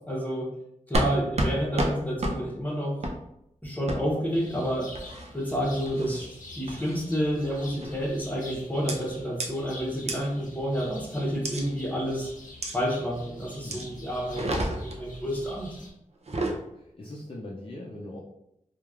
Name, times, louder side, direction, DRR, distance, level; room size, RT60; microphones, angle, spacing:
voice 1, 0.1-0.5 0.9-3.0 3.6-4.9 5.3-12.3 12.7-15.7, equal, 10° left, -3 dB, 0.8 m, -29 dB
sound 1, 0.9-1.1 1.4-1.5 1.8-1.9 2.2-2.4 3.0-3.2 3.9-4.0 4.9-5.3 5.9-6.2 6.7-7.0 7.8-8.1 8.9-9.0 9.4-9.5 10.1-10.2 11.4-11.6 12.6-12.8 13.7-13.9 14.3-15.0 16.2-16.6, right 1 dB, 50° right, 0.5 m, -29 dB
sound 2, 4.3-15.9, left 1 dB, 75° left, 0.7 m, -46 dB
voice 2, 13.6-13.9 16.3-18.2, left 1 dB, 40° left, -4 dB, 0.4 m, -41 dB
3.1 x 2.2 x 2.4 m, 0.81 s
wide cardioid pair, 75°, 14 cm